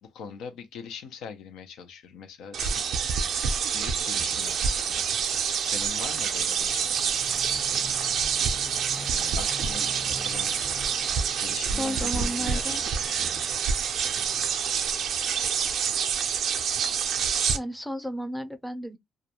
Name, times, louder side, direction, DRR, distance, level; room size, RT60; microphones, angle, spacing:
voice 1, 0.0-3.3 3.7-5.0 5.6-7.0 8.4-8.5 9.1-10.5 11.4-12.8 13.1-13.3, left 6 dB, 85° left, 0.5 m, -42 dB
sound 1, 2.5-17.6, right 7 dB, 70° right, 0.4 m, -27 dB
sound 2, 4.4-14.6, left 1 dB, 40° left, 1.0 m, -46 dB
voice 2, 11.6-12.8 17.5-19.0, equal, ahead, 0.4 m, -33 dB
2.3 x 2.1 x 2.8 m
cardioid pair, 90°, 0 cm